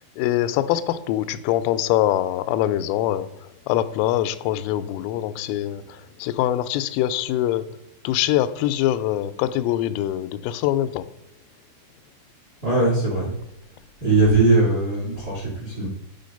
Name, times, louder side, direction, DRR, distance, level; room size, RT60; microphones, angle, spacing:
voice 1, 0.2-7.7 8.0-11.1, left 13 dB, 90° left, 12 dB, 3.1 m, -24 dB
voice 2, 12.6-13.3 14.0-15.9, right 2 dB, 45° right, -5 dB, 1.3 m, -20 dB
8.3 x 4.5 x 5.2 m, 0.86 s
omnidirectional pair, 5.7 m